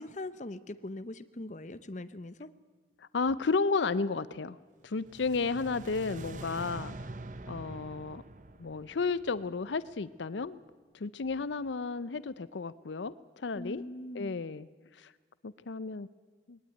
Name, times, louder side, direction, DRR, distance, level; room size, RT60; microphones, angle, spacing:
voice 1, 0.0-2.5 13.6-14.4, left 1 dB, 40° left, 13 dB, 0.8 m, -41 dB
voice 2, 3.0-4.6 4.8-7.0 7.5-8.2 8.6-10.6 10.9-13.8 14.1-14.7 14.9-15.1 15.4-16.1 16.5-16.6, left 4 dB, 75° left, 17 dB, 0.6 m, -33 dB
sound 1, 4.9-10.1, right 2 dB, 40° right, 0.8 m, -45 dB
21.0 x 18.5 x 9.2 m, 1.4 s
head